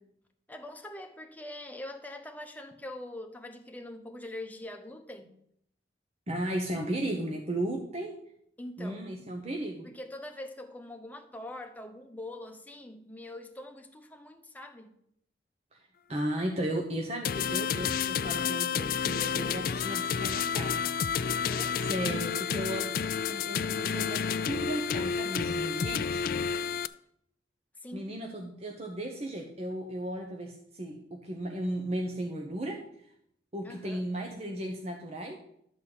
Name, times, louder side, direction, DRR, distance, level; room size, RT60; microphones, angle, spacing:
voice 1, 0.5-5.4 8.6-9.0 9.8-15.0 21.2-21.8 27.8-28.1 33.6-34.0, left 1 dB, 10° left, 0.9 m, -43 dB
voice 2, 6.3-8.2 8.8-9.9 15.7-21.5 21.9-23.0 23.3-26.2 27.9-33.1 33.5-35.4, right 1 dB, 35° right, 1.0 m, -35 dB
sound 1, 17.2-26.9, left 7 dB, 50° left, 0.3 m, -30 dB
12.0 x 4.2 x 7.9 m
head